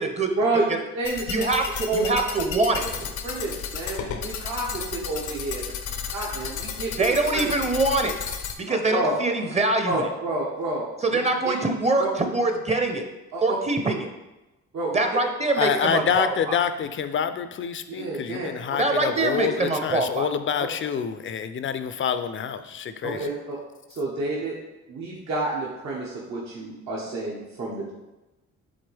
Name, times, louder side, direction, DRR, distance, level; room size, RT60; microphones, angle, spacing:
voice 1, 0.0-0.8 1.3-3.1 7.0-8.1 8.6-10.1 11.0-13.0 13.4-14.1 14.9-16.6 18.8-20.3, right 2 dB, 20° right, 5 dB, 0.8 m, -24 dB
voice 2, 0.9-1.5 1.9-2.0 3.2-4.8 5.1-5.6 6.1-7.0 7.3-7.5 8.7-9.1 9.8-10.9 11.1-11.5 12.0-12.1 13.3-13.6 14.7-15.0 17.9-18.5 20.6-20.7 23.0-23.6 24.0-24.5 24.9-27.9, right 2 dB, 65° right, -5 dB, 1.4 m, -29 dB
sound 1, 1.0-8.5, left 7 dB, 75° left, 0.7 m, -33 dB
voice 3, 15.6-23.3, left 7 dB, 40° left, 10 dB, 0.5 m, -27 dB
7.9 x 3.6 x 3.4 m, 1.0 s
cardioid pair, 90°, 30 cm